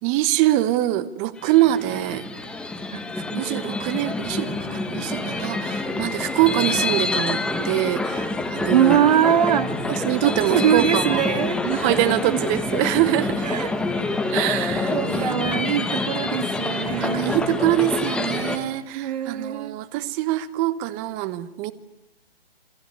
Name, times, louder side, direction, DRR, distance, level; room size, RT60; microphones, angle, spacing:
voice 1, 0.0-2.2 3.1-9.0 9.9-11.2 11.6-13.7 14.3-15.4 17.0-21.7, right 14 dB, 20° right, 16 dB, 1.0 m, -24 dB
sound 1, 1.4-18.6, left 3 dB, 5° left, 1.2 m, -27 dB
voice 2, 8.7-9.7 10.5-11.6 12.3-12.4 13.4-13.7 14.9-17.4 18.9-19.8, right 9 dB, 40° right, 10 dB, 2.1 m, -22 dB
26.5 x 23.0 x 8.4 m, 0.97 s
hypercardioid pair, 150°, 30 cm